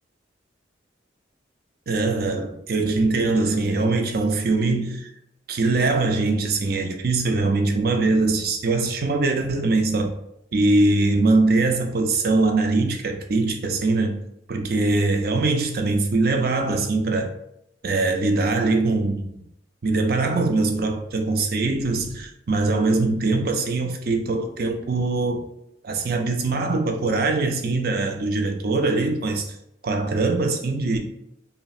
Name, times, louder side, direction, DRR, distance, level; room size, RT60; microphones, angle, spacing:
voice 1, 1.9-5.1 5.5-10.1 10.5-14.1 14.5-17.3 17.8-19.3 19.8-25.4 25.8-29.5 29.8-31.0, right 3 dB, 50° right, 4 dB, 0.5 m, -22 dB
5.4 x 2.0 x 2.4 m, 0.78 s
head